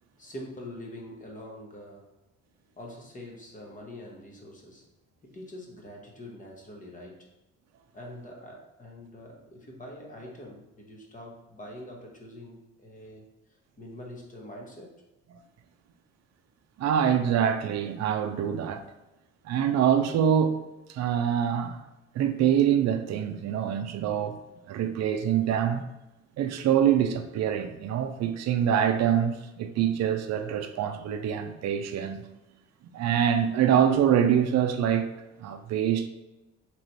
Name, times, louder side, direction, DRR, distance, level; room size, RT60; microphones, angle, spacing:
voice 1, 0.2-2.1 2.8-4.8 5.2-7.3 7.9-13.3 13.8-14.9, left 1 dB, 25° left, 1.0 m, -44 dB
voice 2, 16.8-18.8 19.5-20.6 20.9-21.8 22.1-24.4 24.7-25.8 26.4-32.2 32.9-35.1 35.4-36.1, right 9 dB, 60° right, 0.5 m, -25 dB
3.1 x 3.0 x 4.1 m
cardioid pair, 90°, 30 cm